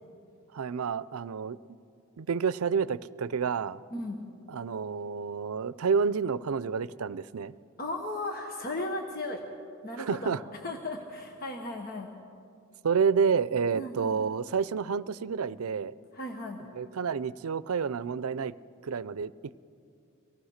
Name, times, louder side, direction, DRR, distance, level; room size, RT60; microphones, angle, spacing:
voice 1, 0.5-1.6 2.2-3.8 4.5-7.5 10.0-10.4 12.8-16.0 16.7-18.5 18.8-19.3, right 6 dB, 85° right, 18 dB, 0.5 m, -29 dB
voice 2, 7.8-9.4 9.8-10.3 10.6-12.1 13.7-14.2 16.1-16.6, left 2 dB, 45° left, 3 dB, 1.3 m, -36 dB
24.5 x 17.5 x 6.5 m, 2.4 s
head